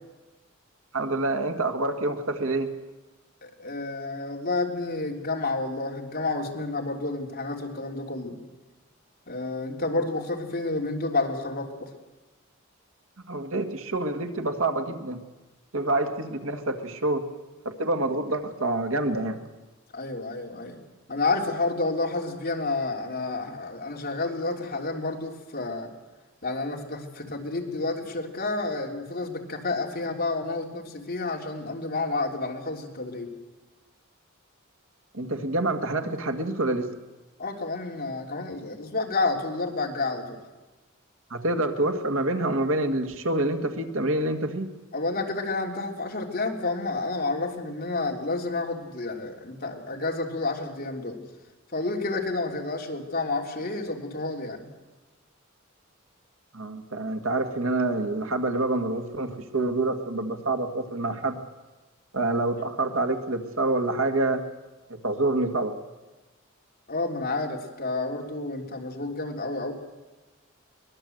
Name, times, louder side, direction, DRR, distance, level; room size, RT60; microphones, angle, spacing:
voice 1, 0.9-2.7 13.3-15.2 15.7-17.2 17.6-19.4 35.1-36.9 41.3-44.7 56.5-61.4 62.1-64.4 64.9-65.7, right 2 dB, 85° right, 6 dB, 2.0 m, -27 dB
voice 2, 3.4-8.4 9.3-11.9 19.9-20.8 21.1-25.9 26.4-33.3 37.4-40.4 44.9-51.2 51.7-54.7 66.9-69.7, left 3 dB, 45° left, 1 dB, 3.1 m, -30 dB
23.0 x 20.0 x 7.9 m, 1.2 s
head